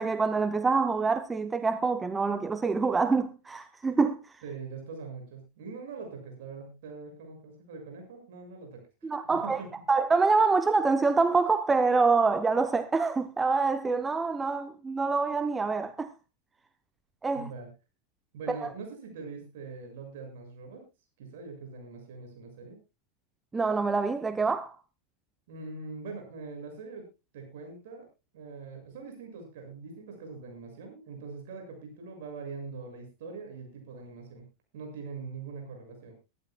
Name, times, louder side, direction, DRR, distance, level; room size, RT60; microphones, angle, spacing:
voice 1, 0.0-4.3 9.0-9.6 9.9-16.1 17.2-17.5 18.5-18.7 23.5-24.8, right 4 dB, 15° right, 0.7 m, -26 dB
voice 2, 4.4-9.1 9.4-9.7 17.3-17.7 18.3-20.8 21.2-22.8 25.5-27.1 27.3-28.0 28.3-34.4 34.7-36.1, right 4 dB, 55° right, 6.7 m, -42 dB
23.0 x 12.0 x 2.3 m
figure-of-eight pair, 90°, 0 cm